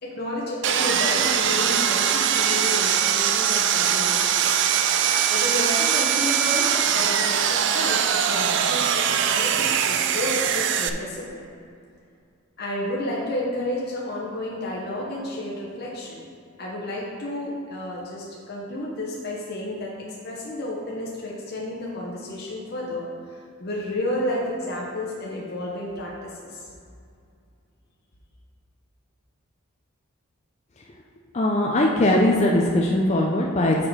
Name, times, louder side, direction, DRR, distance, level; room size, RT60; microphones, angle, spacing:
voice 1, 0.0-4.4 5.3-11.4 12.6-16.3 16.6-26.6, left 1 dB, 50° left, -4 dB, 1.0 m, -31 dB
Sawing, 0.6-10.9, right 8 dB, 55° right, 0.4 m, -22 dB
voice 2, 31.3-33.9, left 1 dB, 30° left, -1 dB, 0.5 m, -20 dB
6.4 x 6.0 x 4.6 m, 2.4 s
head